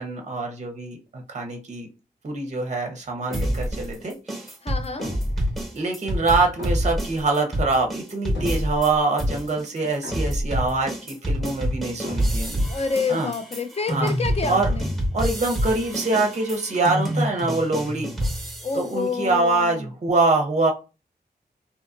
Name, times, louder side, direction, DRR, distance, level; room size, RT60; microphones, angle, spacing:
voice 1, 0.0-1.9 2.2-4.5 5.7-12.7 13.1-13.3 13.9-14.1 14.5-14.7 15.1-18.1 18.7-20.7, right 3 dB, 40° right, 0.6 m, -24 dB
sound 1, 3.3-4.0 5.0-5.6 6.6-7.3 8.3-9.0 10.0-10.7 12.0-12.7, equal, 85° left, 1.0 m, -28 dB
sound 2, 3.3-8.9 9.2-18.9, equal, ahead, 0.9 m, -28 dB
voice 2, 4.6-5.1 12.7-14.9 18.6-19.9, left 5 dB, 35° left, 0.4 m, -28 dB
2.7 x 2.5 x 2.4 m
wide cardioid pair, 100°, 17 cm